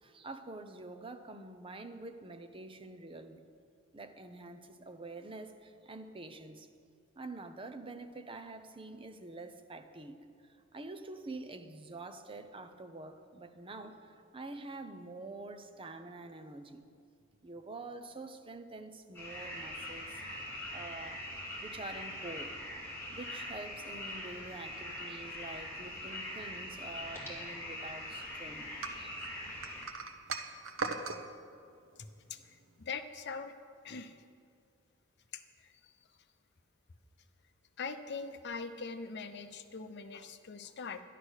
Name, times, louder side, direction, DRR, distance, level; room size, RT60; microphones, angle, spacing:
voice 1, 0.0-3.4 3.9-6.7 7.2-10.2 10.7-16.8 17.4-21.2 21.6-22.6 23.1-28.7 29.0-29.2 29.4-29.5, right 2 dB, 25° right, 0.8 m, -46 dB
sound 1, 19.1-29.8, left 1 dB, 10° left, 2.7 m, -43 dB
sound 2, 28.8-31.2, right 4 dB, 75° right, 0.9 m, -38 dB
voice 2, 32.8-33.5 33.8-34.2 35.3-35.9 37.8-41.0, left 5 dB, 55° left, 0.8 m, -42 dB
11.5 x 11.0 x 6.4 m
head